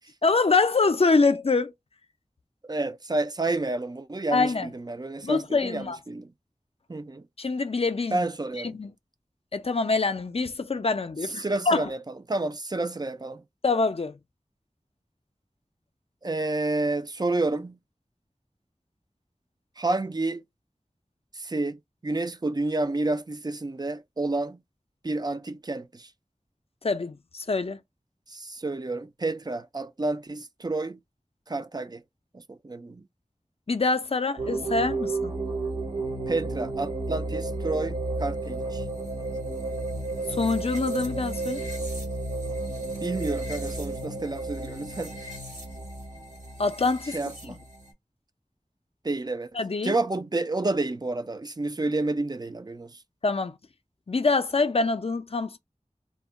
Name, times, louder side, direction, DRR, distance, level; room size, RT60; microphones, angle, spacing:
voice 1, 0.2-1.7 4.3-4.7 5.2-6.0 7.4-8.2 8.6-8.9 9.5-11.9 13.6-14.1 26.8-27.8 33.7-35.3 40.3-41.6 46.6-47.2 49.5-49.9 53.2-53.6 54.1-55.6, left 3 dB, 50° left, 0.4 m, -25 dB
voice 2, 2.6-6.3 6.9-7.3 8.1-8.8 11.2-13.4 16.2-17.8 19.8-20.4 21.3-24.6 25.0-26.1 28.3-31.0 31.5-32.0 32.3-33.0 36.3-38.8 43.0-45.3 47.1-47.6 49.0-49.6 49.8-53.0, right 2 dB, 30° right, 0.4 m, -30 dB
sound 1, 34.4-47.9, right 2 dB, 65° right, 1.2 m, -32 dB
2.2 x 2.1 x 3.5 m
wide cardioid pair, 45°, 13 cm